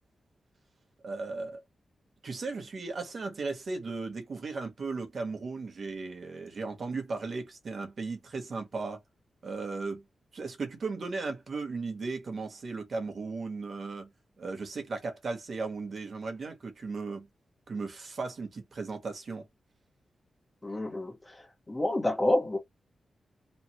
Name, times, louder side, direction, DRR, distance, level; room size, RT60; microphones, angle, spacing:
voice 1, 1.0-1.6 2.2-9.0 9.4-10.0 10.3-14.1 14.4-17.3 17.7-19.5, right 4 dB, 55° right, 1.3 m, -36 dB
voice 2, 20.6-22.6, left 1 dB, 15° left, 1.3 m, -29 dB
3.2 x 2.3 x 3.0 m
wide cardioid pair, 110°, 0 cm